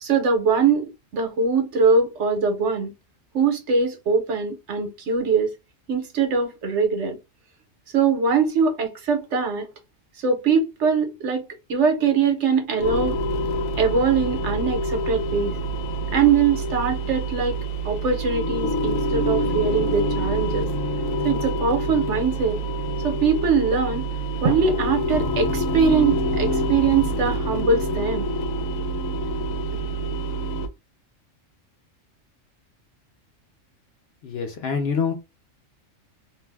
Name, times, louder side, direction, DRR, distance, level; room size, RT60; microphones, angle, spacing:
voice 1, 0.0-2.9 3.3-5.5 5.9-7.2 7.9-9.7 10.2-13.2 13.8-15.6 16.1-17.6 17.8-20.7 21.2-22.6 23.0-24.1 24.4-28.3, right 5 dB, 65° right, 1.1 m, -22 dB
sound 1, 12.8-30.7, right 1 dB, 90° left, 1.0 m, -26 dB
voice 2, 34.2-35.1, left 6 dB, 60° left, 0.8 m, -25 dB
2.6 x 2.1 x 3.3 m
omnidirectional pair, 1.4 m